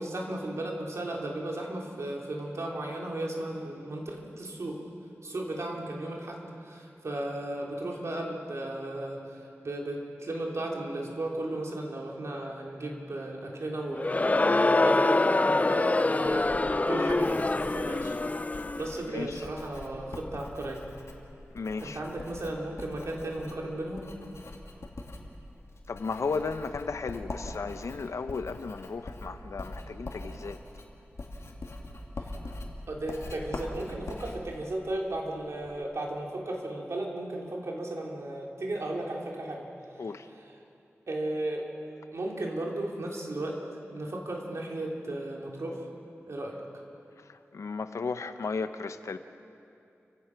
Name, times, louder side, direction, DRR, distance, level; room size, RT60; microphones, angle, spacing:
voice 1, 0.0-4.8 5.2-16.6 16.9-18.2 18.8-20.8 21.8-24.1 32.9-39.7 40.3-40.5 41.1-41.7 42.1-43.6 43.9-45.8 46.3-46.6, right 1 dB, 70° right, -1 dB, 3.4 m, -35 dB
Crowd, 13.9-19.0, left 2 dB, 30° left, 0.5 m, -25 dB
Writing, 16.3-35.8, left 2 dB, 65° left, 2.4 m, -43 dB
voice 2, 19.1-19.4 21.5-22.0 25.9-30.6 40.0-40.3 47.5-49.2, left 4 dB, 85° left, 10 dB, 0.9 m, -34 dB
30.0 x 16.0 x 6.0 m, 2.6 s
wide cardioid pair, 80°, 5 cm